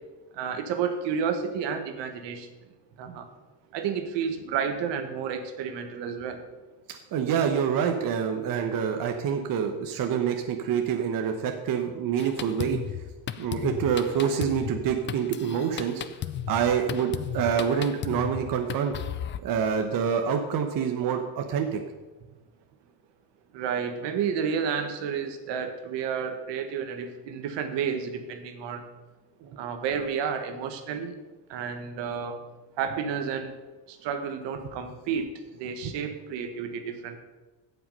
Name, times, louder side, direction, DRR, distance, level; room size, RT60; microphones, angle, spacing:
voice 1, 0.3-2.5 3.0-3.3 3.7-6.4 23.5-28.9 29.6-31.1 31.5-32.4 32.8-33.5 33.9-37.2, right 7 dB, 75° right, 7 dB, 1.5 m, -31 dB
voice 2, 6.9-12.8 13.4-16.0 16.5-18.9 19.4-21.8 29.4-29.6 35.8-35.9, right 7 dB, 50° right, 5 dB, 1.1 m, -27 dB
Drum kit, 12.2-19.4, left 10 dB, 30° left, 0.4 m, -35 dB
16.0 x 5.8 x 5.4 m, 1.2 s
cardioid pair, 145°, 43 cm